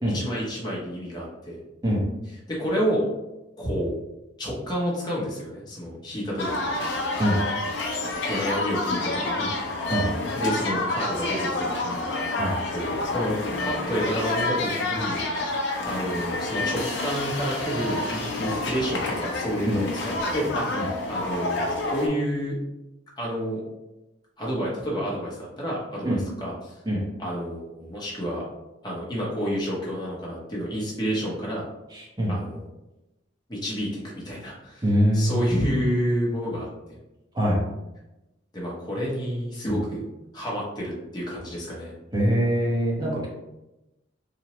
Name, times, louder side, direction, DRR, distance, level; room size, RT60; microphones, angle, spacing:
voice 1, 0.1-1.6 2.2-3.1 3.6-3.9 4.4-6.7 8.3-9.5 10.3-12.1 12.7-13.3 13.6-15.2 15.8-22.6 23.2-23.6 24.4-26.8 27.2-28.4 28.8-31.6 32.3-32.7 33.5-36.7 38.5-40.0 40.3-41.9, equal, 20° left, -4 dB, 0.7 m, -29 dB
Taking a bus in Beijing (to Tiantan), 6.4-22.1, left 2 dB, 65° left, 0.5 m, -28 dB
voice 2, 31.9-32.3 34.8-35.4 37.3-37.6 39.7-39.8 42.1-43.3, equal, 20° right, -4 dB, 0.7 m, -23 dB
2.9 x 2.1 x 2.9 m, 0.98 s
head